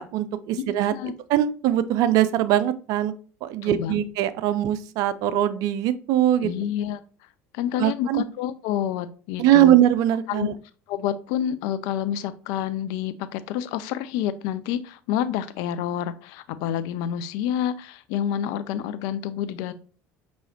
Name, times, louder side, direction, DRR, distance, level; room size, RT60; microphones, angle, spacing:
voice 1, 0.0-3.1 3.4-6.5 7.8-8.2 9.4-10.5, right 12 dB, 60° right, 14 dB, 0.4 m, -21 dB
voice 2, 0.6-1.1 3.6-4.0 6.4-7.0 7.5-9.7 10.3-10.5 10.9-19.7, left 10 dB, 65° left, 13 dB, 0.4 m, -28 dB
6.1 x 3.1 x 2.8 m, 0.39 s
hypercardioid pair, 70°, 7 cm